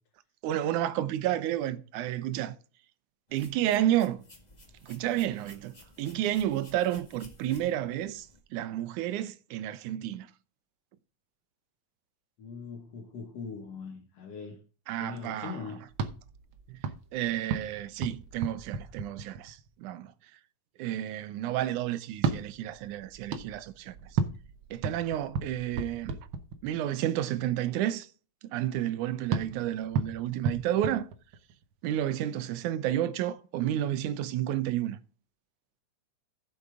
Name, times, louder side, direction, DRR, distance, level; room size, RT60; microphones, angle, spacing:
voice 1, 0.4-2.6 3.3-4.2 4.8-8.3 8.5-10.3 14.9-15.6 16.7-16.8 17.1-20.1 20.8-23.9 24.7-26.2 26.6-28.1 28.4-31.1 31.8-35.0, right 12 dB, 85° right, 2.2 m, -31 dB
sound 1, 3.3-8.4, left 1 dB, 20° left, 1.5 m, -55 dB
voice 2, 12.4-14.6 15.0-15.8, left 5 dB, 60° left, 2.5 m, -41 dB
sound 2, 15.9-19.7 22.1-27.0 29.3-31.7, right 5 dB, 65° right, 1.3 m, -34 dB
15.0 x 6.8 x 3.6 m
omnidirectional pair, 3.4 m